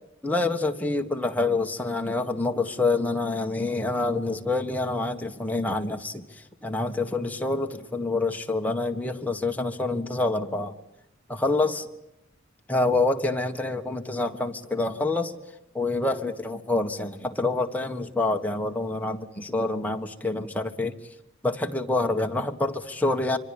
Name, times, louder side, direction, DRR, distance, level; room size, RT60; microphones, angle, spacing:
voice 1, 0.2-6.3 6.6-10.7 11.3-11.9 12.7-15.4 15.7-20.9 21.4-23.4, left 2 dB, 10° left, 4 dB, 1.6 m, -27 dB
25.0 x 25.0 x 8.8 m, 0.87 s
head